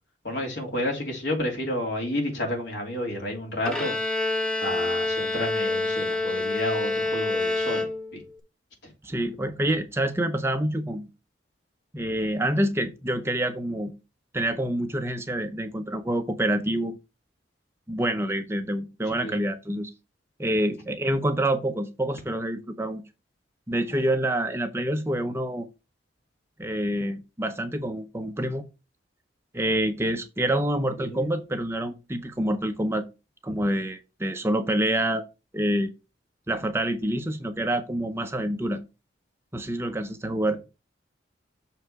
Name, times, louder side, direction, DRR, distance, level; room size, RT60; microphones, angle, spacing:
voice 1, 0.2-3.9 4.6-7.9 8.1-8.2 19.1-19.4 31.0-31.3, left 1 dB, 65° left, 3.0 m, -30 dB
Bowed string instrument, 3.6-8.4, left 2 dB, 5° left, 1.0 m, -27 dB
voice 2, 9.0-11.1 11.9-13.9 14.3-16.9 17.9-19.9 20.4-23.0 23.7-25.7 26.6-28.7 29.5-33.1 33.4-35.2 35.5-35.9 36.5-38.8 39.5-40.6, right 1 dB, 15° right, 0.6 m, -27 dB
6.7 x 4.8 x 4.7 m
head